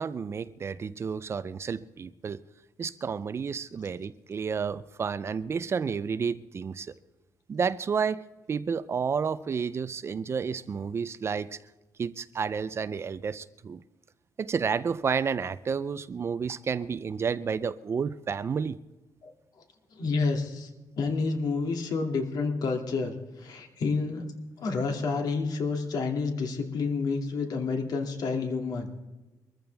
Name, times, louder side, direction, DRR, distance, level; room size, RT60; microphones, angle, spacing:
voice 1, 0.0-2.4 2.8-6.9 7.5-8.2 8.5-11.6 12.0-13.8 14.4-18.8, right 6 dB, 35° right, 0.5 m, -31 dB
voice 2, 19.9-20.7 21.0-24.3 24.6-29.0, left 4 dB, 65° left, 2.5 m, -29 dB
23.0 x 14.5 x 3.5 m
cardioid pair, 145°, 7 cm